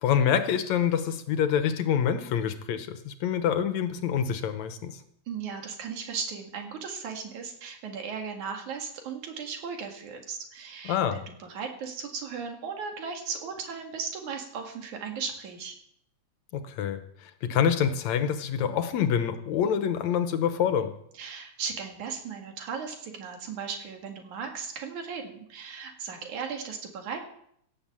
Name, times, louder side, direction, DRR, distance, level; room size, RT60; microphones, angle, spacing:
voice 1, 0.0-4.9 10.9-11.2 16.5-20.9, left 8 dB, 75° left, 9 dB, 2.2 m, -26 dB
voice 2, 5.3-15.8 21.1-27.2, right 6 dB, 90° right, 3 dB, 3.5 m, -36 dB
17.0 x 8.0 x 7.4 m, 0.70 s
omnidirectional pair, 3.3 m